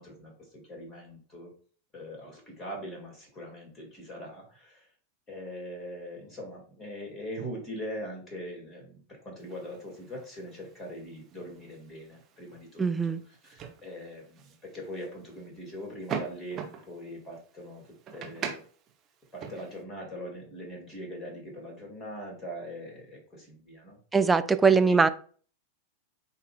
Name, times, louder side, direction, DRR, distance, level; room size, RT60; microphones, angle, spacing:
voice 1, 0.0-1.5 1.9-4.9 5.3-12.9 13.4-18.6 19.3-24.0 24.7-25.0, equal, 15° left, 2.1 m, -41 dB
sound 1, 9.4-19.8, right 7 dB, 30° right, 0.8 m, -43 dB
voice 2, 12.8-13.2 24.1-25.1, right 4 dB, 10° right, 0.3 m, -21 dB
8.1 x 2.7 x 2.3 m
figure-of-eight pair, 90°, 0 cm